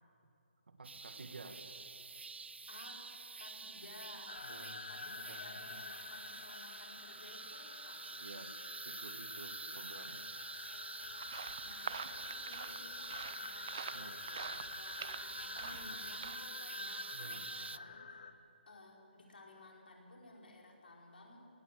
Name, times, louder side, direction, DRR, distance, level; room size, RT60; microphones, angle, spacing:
voice 1, 0.7-1.6 4.4-4.8 5.2-5.8 8.1-8.6 8.9-10.3 13.9-14.2 15.8-16.0 17.1-17.5, right 3 dB, 60° right, 7 dB, 1.9 m, -52 dB
sound 1, 0.8-17.8, right 4 dB, 80° right, 0.6 m, -48 dB
voice 2, 2.7-3.0 3.4-4.4 4.9-8.0 11.6-18.3 18.7-21.5, left 2 dB, 60° left, -1 dB, 5.3 m, -56 dB
sound 2, 4.3-18.3, left 5 dB, 40° left, 1.2 m, -48 dB
sound 3, 11.0-16.4, right 6 dB, 20° right, 0.4 m, -47 dB
19.0 x 17.5 x 7.7 m, 2.7 s
hypercardioid pair, 180°, 6 cm